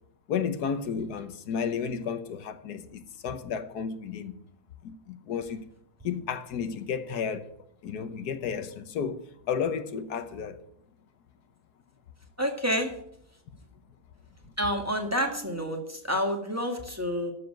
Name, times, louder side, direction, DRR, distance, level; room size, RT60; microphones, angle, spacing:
voice 1, 0.3-4.4 4.8-5.6 6.0-7.5 7.8-10.6, left 6 dB, 80° left, 1.5 m, -32 dB
voice 2, 12.4-12.9 14.6-17.3, equal, 10° right, 1.8 m, -29 dB
12.5 x 7.0 x 7.7 m
omnidirectional pair, 1.7 m